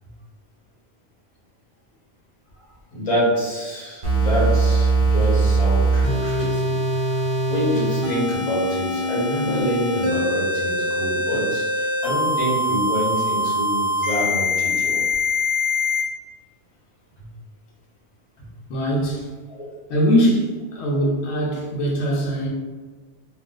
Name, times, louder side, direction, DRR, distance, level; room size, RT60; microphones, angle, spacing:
voice 1, 2.9-6.7 7.5-15.0 19.5-19.7, equal, 35° left, -6 dB, 1.1 m, -26 dB
sound 1, 4.0-16.0, equal, 35° right, 0.8 m, -22 dB
voice 2, 18.7-19.3 19.9-22.5, equal, 85° left, -3 dB, 0.9 m, -21 dB
2.4 x 2.4 x 3.7 m, 1.3 s
omnidirectional pair, 1.1 m